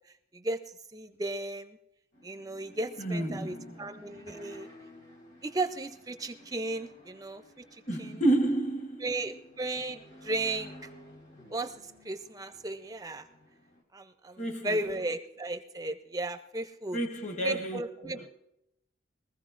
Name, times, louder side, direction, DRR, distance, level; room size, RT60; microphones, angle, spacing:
voice 1, 0.9-1.8 2.2-4.7 5.4-7.4 7.7-8.2 9.0-10.7 11.5-11.7 12.0-13.2 13.9-17.0 17.4-18.3, right 2 dB, 20° right, 0.4 m, -35 dB
sound 1, 2.1-13.8, left 1 dB, 60° left, 3.2 m, -53 dB
voice 2, 3.0-3.9 7.9-9.2 14.4-14.9 16.9-18.3, right 1 dB, 35° left, 1.2 m, -30 dB
22.0 x 15.0 x 2.5 m
head